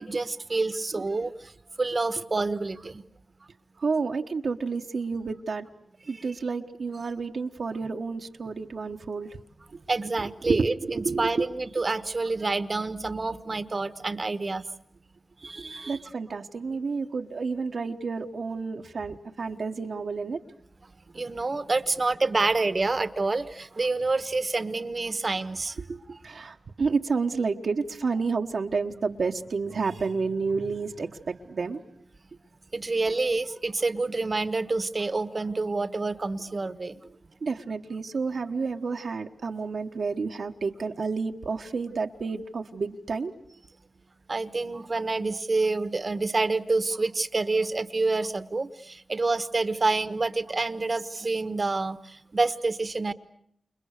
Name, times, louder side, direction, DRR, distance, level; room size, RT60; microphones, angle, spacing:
voice 1, 0.0-1.5 1.8-3.0 6.1-6.2 9.9-14.6 15.4-16.0 21.1-25.8 26.1-26.2 32.7-36.9 44.3-53.1, right 3 dB, 45° right, 13 dB, 1.3 m, -28 dB
voice 2, 3.8-5.7 6.1-9.3 10.5-11.5 15.9-20.4 25.9-31.8 37.4-43.3, right 4 dB, 75° right, 3 dB, 1.3 m, -30 dB
29.5 x 29.0 x 6.6 m, 0.71 s
cardioid pair, 65°, 0 cm